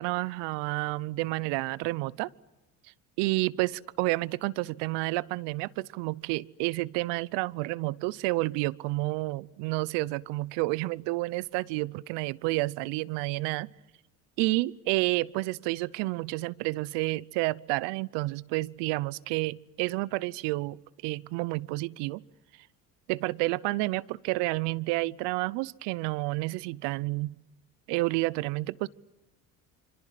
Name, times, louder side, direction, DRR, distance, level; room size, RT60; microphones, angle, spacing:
voice 1, 0.0-2.3 3.2-13.7 14.4-22.2 23.1-27.4 27.9-28.9, right 21 dB, 75° right, 23 dB, 0.8 m, -30 dB
26.5 x 26.0 x 7.6 m, 1.0 s
supercardioid pair, 80°, 42 cm